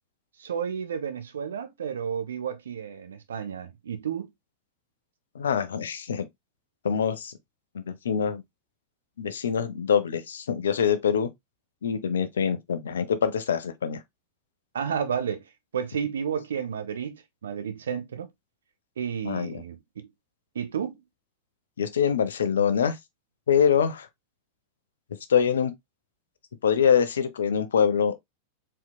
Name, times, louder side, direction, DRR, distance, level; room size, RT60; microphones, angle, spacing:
voice 1, 0.4-4.3 14.7-15.4 15.7-18.3 19.0-20.1 20.5-21.0, right 7 dB, 65° right, 0.7 m, -31 dB
voice 2, 5.3-6.3 6.8-7.3 7.7-8.4 9.2-11.3 11.8-14.0 19.2-19.6 21.8-23.0 23.5-24.1 25.3-25.7 26.6-28.1, left 7 dB, 65° left, 0.6 m, -24 dB
4.4 x 3.7 x 2.2 m
figure-of-eight pair, 90°, 0 cm